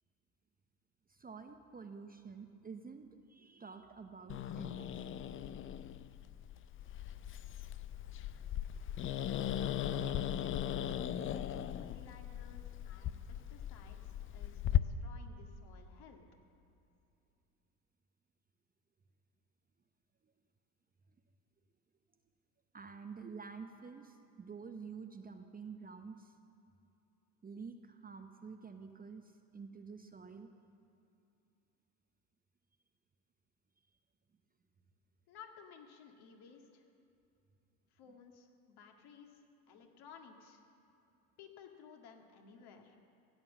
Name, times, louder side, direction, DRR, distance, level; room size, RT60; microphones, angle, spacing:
voice 1, 1.1-5.0 22.7-26.3 27.4-30.5, right 5 dB, 20° right, 6 dB, 0.8 m, -49 dB
Growling, 4.3-14.8, left 11 dB, 25° left, 0.5 m, -38 dB
voice 2, 9.5-16.2 35.3-36.9 37.9-40.6 41.4-43.0, left 6 dB, 50° left, 3 dB, 2.0 m, -57 dB
15.5 x 9.0 x 7.4 m, 2.7 s
hypercardioid pair, 75°, 49 cm